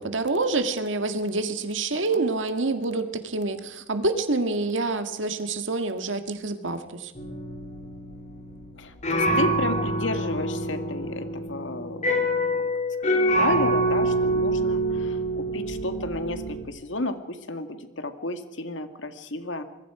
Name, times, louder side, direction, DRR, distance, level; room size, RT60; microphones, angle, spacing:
voice 1, 0.0-7.1, right 3 dB, 85° right, 8 dB, 1.9 m, -27 dB
sound 1, 7.2-16.6, right 1 dB, 40° left, 3.2 m, -26 dB
voice 2, 8.8-12.3 13.0-19.6, left 2 dB, 80° left, 8 dB, 2.0 m, -32 dB
25.5 x 22.0 x 4.9 m, 0.97 s
head